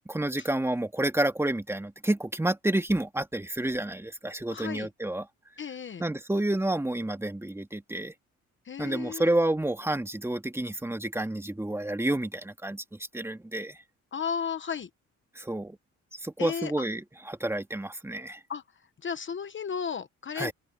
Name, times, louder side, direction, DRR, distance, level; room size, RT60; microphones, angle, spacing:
voice 1, 0.1-5.3 6.0-8.1 8.8-12.8 13.1-13.8 15.4-15.8 16.1-18.4 20.4-20.5, right 1 dB, 10° right, 2.3 m, -29 dB
voice 2, 4.5-4.9 5.6-6.0 8.6-9.3 14.1-14.9 16.4-16.9 18.5-18.6 19.0-20.5, left 7 dB, 40° left, 1.0 m, -34 dB
open air
cardioid pair, 90°, 30 cm